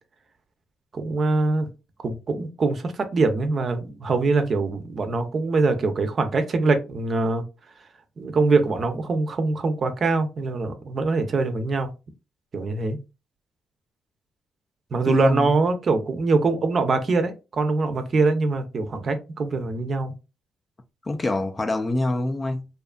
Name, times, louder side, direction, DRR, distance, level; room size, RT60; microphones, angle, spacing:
voice 1, 0.9-1.7 2.0-7.4 8.2-11.9 12.5-13.0 14.9-20.1, right 3 dB, 45° right, 0.6 m, -23 dB
voice 2, 15.1-15.5 21.0-22.7, left 2 dB, 25° left, 0.4 m, -25 dB
2.7 x 2.4 x 2.2 m
cardioid pair, 90°, 0 cm